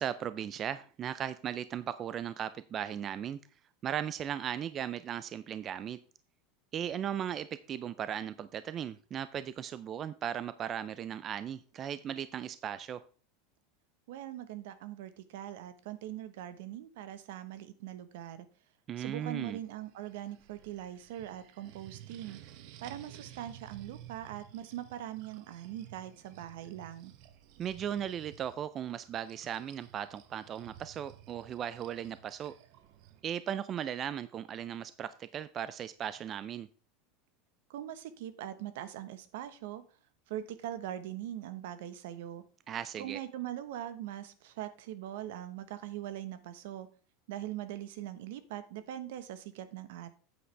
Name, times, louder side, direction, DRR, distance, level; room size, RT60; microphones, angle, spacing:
voice 1, 0.0-3.4 3.8-6.0 6.7-13.0 18.9-19.6 27.6-32.5 33.2-36.7 42.7-43.2, right 9 dB, 30° right, 15 dB, 0.4 m, -37 dB
voice 2, 14.1-18.5 19.0-22.4 22.8-27.1 37.7-39.8 40.3-42.4 43.0-46.9 47.3-50.1, right 12 dB, 75° right, 13 dB, 1.1 m, -41 dB
sound 1, 19.5-33.2, right 12 dB, 55° right, 1.0 m, -54 dB
9.3 x 8.6 x 3.3 m, 0.37 s
supercardioid pair, 150°, 0 cm